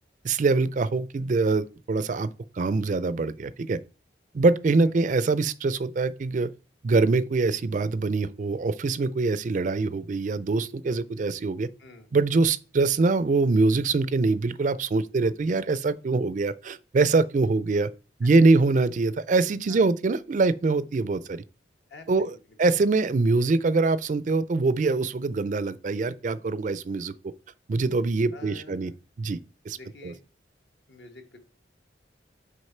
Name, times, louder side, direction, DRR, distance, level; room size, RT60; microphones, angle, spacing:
voice 1, 0.2-2.3 2.6-3.8 4.3-6.5 6.8-11.7 12.1-17.9 18.2-21.4 22.1-22.3 22.6-27.1 27.7-28.9 29.2-29.4 29.7-29.8 30.0-30.1, right 3 dB, 40° right, 0.4 m, -24 dB
voice 2, 21.9-22.9 28.3-29.0 29.7-30.2 30.9-31.4, left 2 dB, 70° left, 1.3 m, -48 dB
6.4 x 5.4 x 4.3 m
head